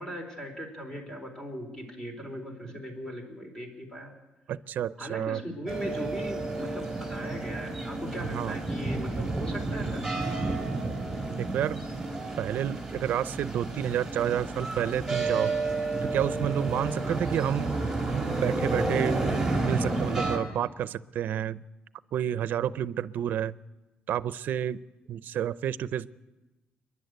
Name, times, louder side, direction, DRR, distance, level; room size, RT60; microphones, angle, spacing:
voice 1, 0.0-4.1 5.0-10.2 17.0-17.2, equal, 20° left, 4 dB, 4.1 m, -39 dB
voice 2, 4.5-5.4 8.2-8.6 11.4-12.1 12.4-15.5 16.0-17.8 18.4-19.2 19.6-21.6 22.1-23.5 24.1-24.8 25.1-26.1, right 10 dB, 65° right, 16 dB, 0.6 m, -30 dB
sound 1, 5.7-20.4, right 3 dB, 5° right, 4.0 m, -31 dB
29.5 x 11.0 x 8.1 m, 1.1 s
cardioid pair, 160°, 3 cm